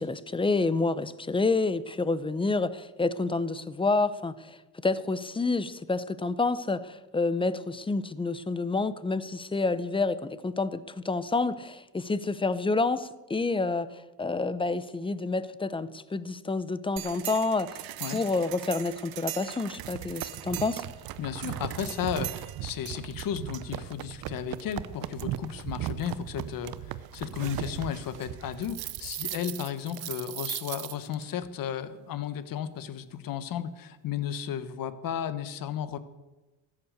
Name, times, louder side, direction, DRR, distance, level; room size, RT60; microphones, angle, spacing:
voice 1, 0.0-20.8, left 3 dB, 15° left, 15 dB, 0.7 m, -29 dB
sound 1, 17.0-31.2, right 14 dB, 70° right, 0.8 m, -38 dB
voice 2, 21.2-36.0, left 9 dB, 60° left, 13 dB, 1.2 m, -34 dB
14.5 x 9.8 x 6.7 m, 1.1 s
cardioid pair, 105°, 37 cm